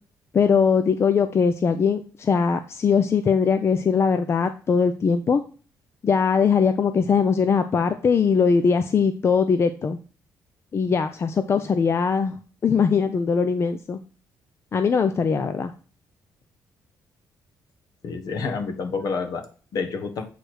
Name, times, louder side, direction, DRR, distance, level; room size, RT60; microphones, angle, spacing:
voice 1, 0.3-5.4 6.0-10.0 10.7-12.4 12.6-14.0 14.7-15.7, left 6 dB, 40° left, 9 dB, 0.5 m, -21 dB
voice 2, 18.0-20.3, left 4 dB, 60° left, 6 dB, 1.3 m, -29 dB
8.2 x 3.4 x 6.1 m, 0.39 s
cardioid pair, 105°, 7 cm